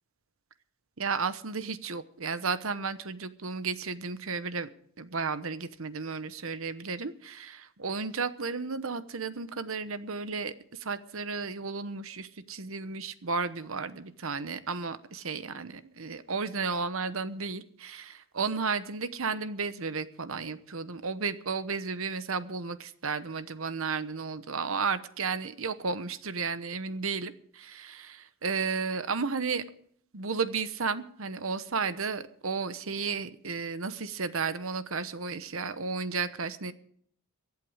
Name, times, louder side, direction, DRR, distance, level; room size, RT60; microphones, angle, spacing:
voice 1, 1.0-4.7 5.0-29.6 30.1-36.7, right 4 dB, 65° right, 12 dB, 1.0 m, -33 dB
23.5 x 8.3 x 5.0 m, 0.63 s
head